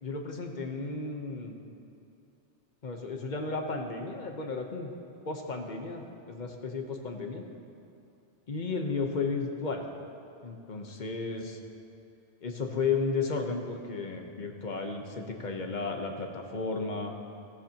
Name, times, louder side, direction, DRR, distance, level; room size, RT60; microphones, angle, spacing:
voice 1, 0.0-1.5 2.8-4.9 5.2-7.4 8.5-9.9 10.4-11.6 12.4-17.1, left 4 dB, 40° left, 3 dB, 1.1 m, -33 dB
15.5 x 13.5 x 2.9 m, 2.8 s
omnidirectional pair, 1.2 m